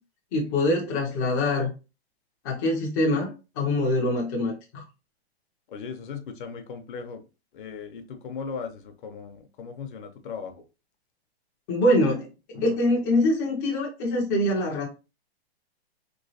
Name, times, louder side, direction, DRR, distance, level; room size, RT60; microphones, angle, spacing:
voice 1, 0.3-1.7 2.4-4.8 11.7-14.9, left 1 dB, 20° left, 0.4 m, -24 dB
voice 2, 5.7-7.2 7.5-10.5, left 5 dB, 50° left, 0.7 m, -37 dB
3.1 x 3.1 x 2.7 m
hypercardioid pair, 160°, 32 cm